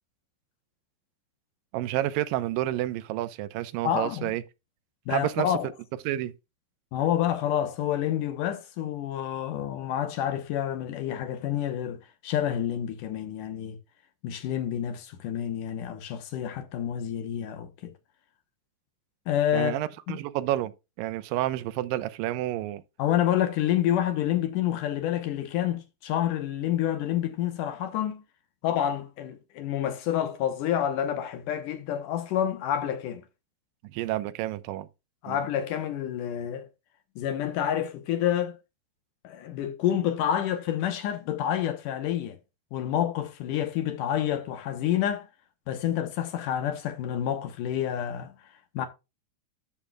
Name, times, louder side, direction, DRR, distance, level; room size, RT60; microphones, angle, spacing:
voice 1, 1.7-4.4 5.1-5.5 6.1-6.3 19.5-20.7 21.0-22.8 33.8-34.9 35.3-35.4, right 14 dB, 80° right, 2.4 m, -29 dB
voice 2, 3.8-4.3 5.1-5.7 6.9-13.8 14.2-17.9 19.3-19.8 20.1-20.2 23.0-28.2 28.6-33.2 35.2-36.7 37.2-38.6 39.2-42.4 42.7-45.3 45.7-48.3 48.7-48.9, left 10 dB, 70° left, 2.4 m, -28 dB
11.5 x 6.9 x 2.3 m
omnidirectional pair, 4.2 m